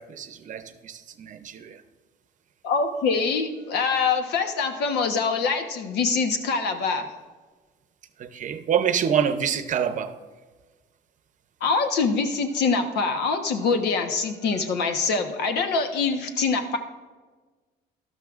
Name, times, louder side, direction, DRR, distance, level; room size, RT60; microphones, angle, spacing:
voice 1, 0.0-1.8 8.2-10.1, right 8 dB, 50° right, 0.7 m, -26 dB
voice 2, 2.6-7.1 11.6-16.8, left 4 dB, 75° left, 1.2 m, -24 dB
13.0 x 12.5 x 2.5 m
cardioid pair, 110°, 17 cm